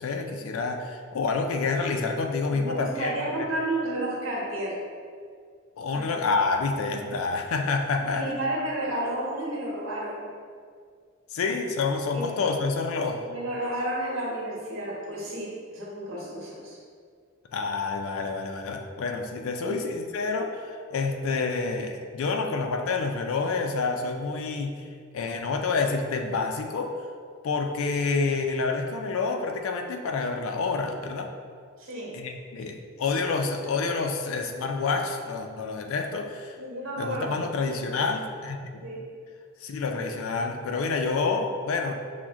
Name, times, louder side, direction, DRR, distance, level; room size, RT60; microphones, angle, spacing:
voice 1, 0.0-3.1 5.8-8.3 11.3-13.2 17.5-24.9 25.1-26.9 27.4-31.3 32.1-36.6 37.0-38.9 39.6-42.0, left 4 dB, 75° left, 4 dB, 0.4 m, -28 dB
voice 2, 2.5-4.8 5.9-6.1 8.0-10.3 12.1-12.4 13.2-16.8 19.6-19.8 31.8-32.2 36.6-37.5 38.8-39.1, right 1 dB, 70° right, -5 dB, 1.1 m, -32 dB
6.0 x 2.1 x 3.5 m, 2.1 s
head